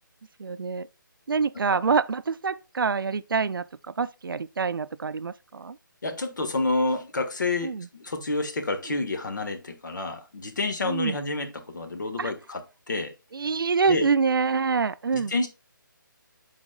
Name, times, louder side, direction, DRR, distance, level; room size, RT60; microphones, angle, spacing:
voice 1, 0.4-0.9 1.3-5.8 7.6-7.9 10.8-11.2 12.2-12.3 13.3-15.3, right 5 dB, 80° right, 0.5 m, -26 dB
voice 2, 6.0-13.1 13.9-14.1 15.1-15.5, left 2 dB, 60° left, 1.4 m, -29 dB
12.0 x 4.2 x 2.2 m
hypercardioid pair, 170°, 11 cm